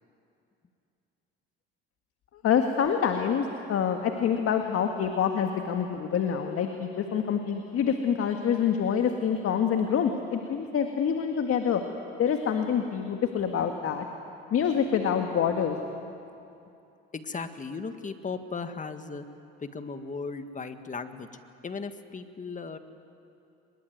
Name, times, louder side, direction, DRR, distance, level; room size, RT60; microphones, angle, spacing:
voice 1, 2.4-11.8 12.2-14.0 14.5-15.8, left 7 dB, 50° left, 5 dB, 1.8 m, -26 dB
voice 2, 17.1-19.3 19.6-21.3 21.6-22.8, left 4 dB, 25° left, 9 dB, 1.8 m, -36 dB
23.0 x 22.0 x 9.4 m, 2.7 s
supercardioid pair, 80°, 29 cm